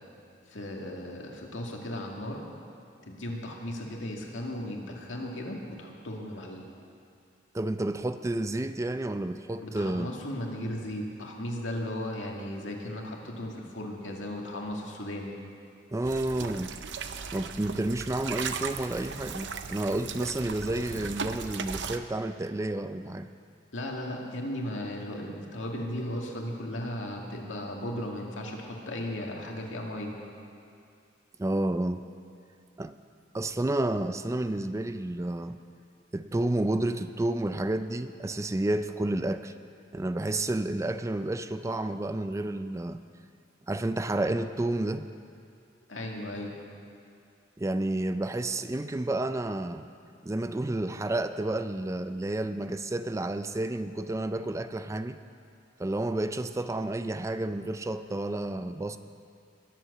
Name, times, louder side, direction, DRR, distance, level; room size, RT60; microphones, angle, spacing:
voice 1, 0.5-2.4 3.1-6.6 9.6-15.3 23.7-30.2 45.9-46.5, left 1 dB, 90° left, 0 dB, 2.1 m, -36 dB
voice 2, 7.5-10.1 15.9-16.8 17.3-23.3 31.4-32.0 32.8-33.0 33.3-35.6 36.1-39.5 39.9-43.0 43.7-45.1 47.6-49.9 50.2-55.2 55.8-59.0, right 1 dB, 15° right, 10 dB, 0.4 m, -30 dB
sound 1, 16.0-22.0, right 5 dB, 65° right, 0.7 m, -37 dB
21.5 x 7.7 x 6.6 m, 2.5 s
head